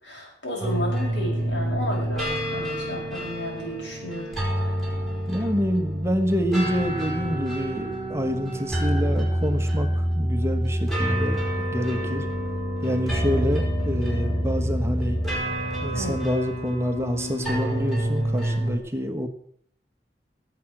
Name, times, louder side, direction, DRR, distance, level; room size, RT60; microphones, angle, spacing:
voice 1, 0.0-4.3 15.9-16.2, equal, 85° left, -1 dB, 6.1 m, -33 dB
sound 1, 0.6-18.8, equal, ahead, 5.1 m, -27 dB
voice 2, 5.3-11.4 11.7-12.3 12.8-15.2 15.8-19.3, equal, 15° right, 6 dB, 1.1 m, -27 dB
18.0 x 7.8 x 5.9 m, 0.64 s
head